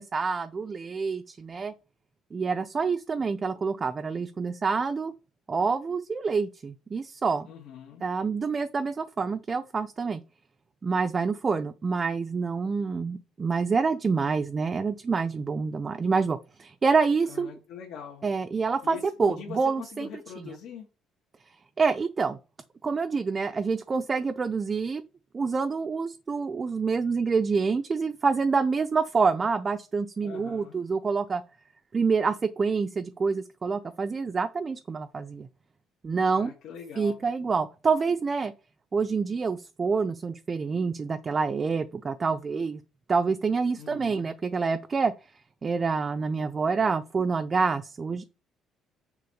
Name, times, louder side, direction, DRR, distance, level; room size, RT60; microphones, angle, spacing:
voice 1, 0.0-1.7 2.3-5.1 5.5-7.5 8.0-10.2 10.8-17.5 18.2-20.1 20.4-20.5 21.8-22.4 22.8-25.0 25.3-31.4 31.9-35.5 36.0-36.5 37.0-38.5 38.9-42.8 43.1-45.1 45.6-48.2, right 4 dB, 25° right, 0.5 m, -27 dB
voice 2, 7.5-8.1 17.2-18.3 18.8-20.9 30.2-30.8 36.3-37.2 43.8-44.4, left 8 dB, 75° left, 1.9 m, -43 dB
6.8 x 4.2 x 6.5 m
cardioid pair, 155°, 0 cm